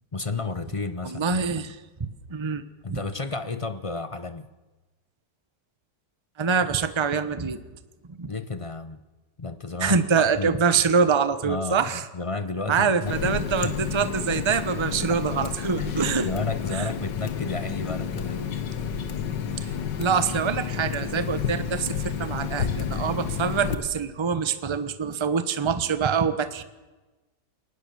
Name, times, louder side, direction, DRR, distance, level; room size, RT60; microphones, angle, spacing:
voice 1, 0.1-1.7 2.8-4.5 8.2-9.0 9.4-10.6 11.4-13.7 15.1-15.2 15.8-18.6, left 3 dB, 40° left, 12 dB, 0.4 m, -32 dB
voice 2, 1.0-1.8 2.3-2.6 2.9-3.0 6.4-7.6 8.1-8.3 9.8-12.0 12.7-16.3 16.7-16.9 19.6-19.7 20.0-26.6, right 6 dB, 20° right, 12 dB, 0.8 m, -25 dB
Water tap faucet, 13.1-23.8, left 7 dB, 80° left, 2.0 m, -30 dB
22.5 x 19.5 x 6.9 m, 1.2 s
omnidirectional pair, 1.9 m